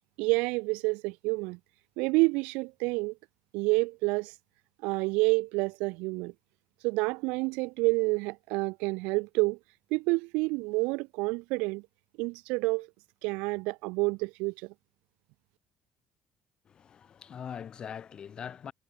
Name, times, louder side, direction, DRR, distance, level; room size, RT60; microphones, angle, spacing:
voice 1, 0.2-1.6 2.0-3.1 3.5-4.3 4.8-6.3 6.8-9.6 9.9-11.8 12.2-12.9 13.2-14.7, right 26 dB, 85° right, 0.8 m, -28 dB
voice 2, 16.7-18.7, left 8 dB, 45° left, 5.3 m, -42 dB
supercardioid pair, 85°, 2 cm